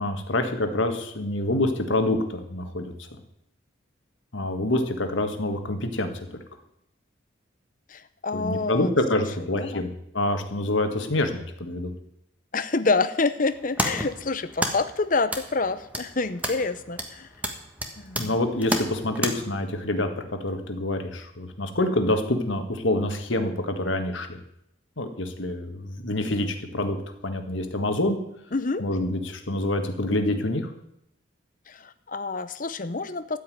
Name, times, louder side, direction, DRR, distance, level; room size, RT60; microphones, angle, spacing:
voice 1, 0.0-2.9 4.3-6.4 8.3-11.9 18.1-24.4 25.0-27.0 27.2-28.2 28.8-30.7, left 1 dB, 65° left, 6 dB, 1.7 m, -26 dB
voice 2, 7.9-8.9 9.6-9.8 12.5-17.3 18.0-18.3 28.5-28.9 31.7-33.4, left 3 dB, 40° left, 12 dB, 0.7 m, -27 dB
sound 1, 13.4-19.3, right 1 dB, 5° right, 1.2 m, -32 dB
13.5 x 5.6 x 9.4 m, 0.76 s
head